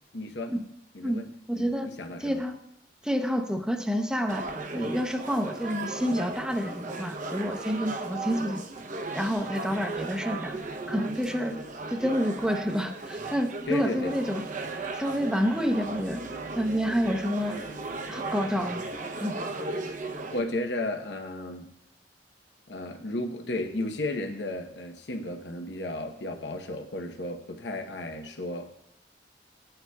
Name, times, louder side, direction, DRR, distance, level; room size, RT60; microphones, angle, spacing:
voice 1, 0.1-0.5 0.9-1.3 1.5-2.5 11.5-11.6 13.7-14.1 20.3-21.7 22.7-28.8, left 2 dB, 75° left, 4 dB, 0.9 m, -34 dB
voice 2, 1.0-1.9 2.2-2.6 3.0-4.5 4.7-8.6 9.1-10.6 10.9-11.6 11.9-14.4 14.9-16.2 16.5-17.6 18.1-18.8 19.2-19.3, equal, 5° right, 5 dB, 0.7 m, -28 dB
sound 1, 4.3-20.4, right 3 dB, 45° right, 0.7 m, -36 dB
18.0 x 9.0 x 2.3 m, 0.78 s
head